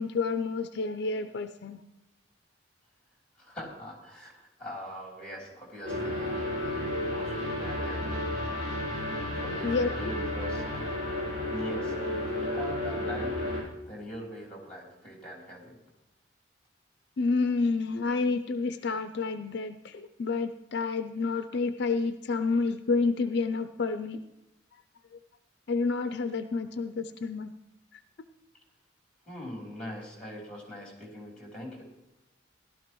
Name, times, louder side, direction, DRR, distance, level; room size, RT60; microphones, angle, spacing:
voice 1, 0.0-1.8 9.6-10.1 17.2-24.2 25.7-27.5, left 4 dB, 55° left, 9 dB, 0.4 m, -29 dB
voice 2, 3.4-8.1 9.3-10.6 11.5-15.8 29.2-31.8, equal, 5° left, -2 dB, 3.3 m, -43 dB
sound 1, 5.8-13.6, left 1 dB, 40° right, 5.3 m, -32 dB
15.5 x 12.5 x 3.0 m, 0.98 s
head